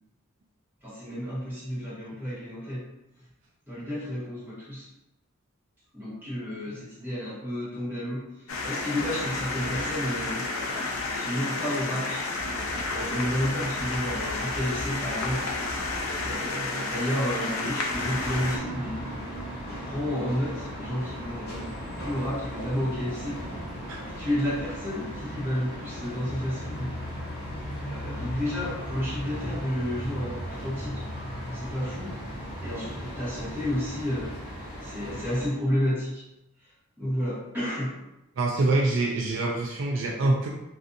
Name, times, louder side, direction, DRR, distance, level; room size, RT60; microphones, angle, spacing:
voice 1, 0.8-2.9 3.7-4.9 5.9-10.5 11.1-12.2 12.9-15.5 16.2-19.1 19.7-23.4 24.1-26.9 27.8-31.0 31.5-32.2 32.6-34.3 34.8-36.2 37.0-37.9, equal, 10° right, -11 dB, 1.1 m, -31 dB
sound 1, 8.5-18.6, left 3 dB, 85° left, 0.5 m, -31 dB
sound 2, 17.9-35.5, equal, 45° left, 0.8 m, -36 dB
voice 2, 38.4-40.5, right 2 dB, 60° right, -1 dB, 0.3 m, -25 dB
2.5 x 2.4 x 2.6 m, 0.92 s
head